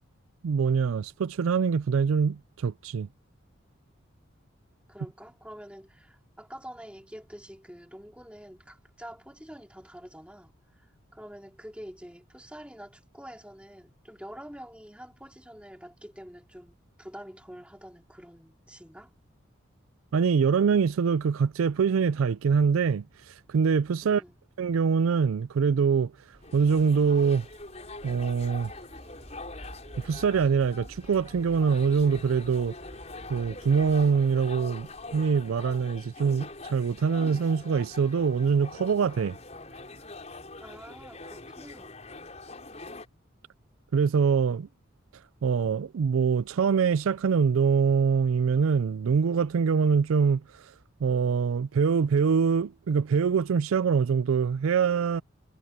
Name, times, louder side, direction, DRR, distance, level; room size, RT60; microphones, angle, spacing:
voice 1, 0.4-3.1 20.1-24.2 24.6-26.1 26.5-27.5 28.0-28.7 30.0-32.8 33.3-39.3 43.9-44.7 45.4-50.4 51.0-55.2, right 6 dB, 85° right, 0.4 m, -24 dB
voice 2, 4.9-19.1 24.0-24.4 40.6-42.0, equal, 5° right, 3.2 m, -46 dB
sound 1, 26.3-34.1, equal, 30° right, 2.7 m, -50 dB
sound 2, 26.4-43.1, left 3 dB, 35° left, 5.9 m, -44 dB
head